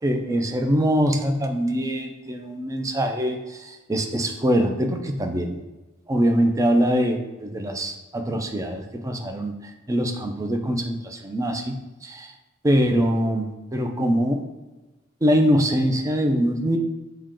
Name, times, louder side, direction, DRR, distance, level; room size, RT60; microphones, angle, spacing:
voice 1, 0.0-5.6 6.1-9.5 9.9-11.8 12.0-12.3 12.6-14.4 15.2-16.8, equal, 15° right, 4 dB, 0.4 m, -23 dB
6.1 x 2.2 x 3.7 m, 1.1 s
head